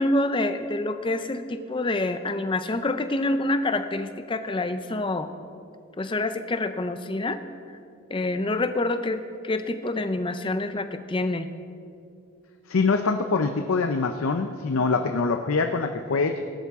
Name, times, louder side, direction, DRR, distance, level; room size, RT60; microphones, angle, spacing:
voice 1, 0.0-5.3 6.0-7.4 8.1-11.5, left 2 dB, 25° left, 10 dB, 0.5 m, -27 dB
voice 2, 12.7-16.4, left 4 dB, 80° left, 6 dB, 0.5 m, -24 dB
17.5 x 11.5 x 3.6 m, 2.4 s
head